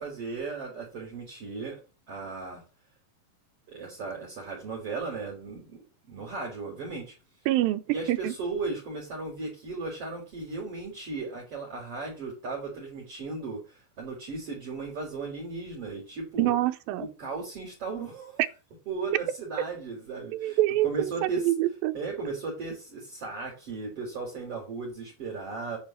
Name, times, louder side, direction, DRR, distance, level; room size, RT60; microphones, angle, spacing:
voice 1, 0.0-1.8 2.1-2.6 3.7-7.2 7.9-16.5 17.0-18.4 18.9-21.5 21.9-25.8, right 3 dB, 40° right, 3.9 m, -36 dB
voice 2, 7.5-7.8 8.1-8.3 16.4-17.1 20.3-22.0, right 15 dB, 85° right, 2.5 m, -26 dB
9.2 x 4.5 x 7.3 m
omnidirectional pair, 4.1 m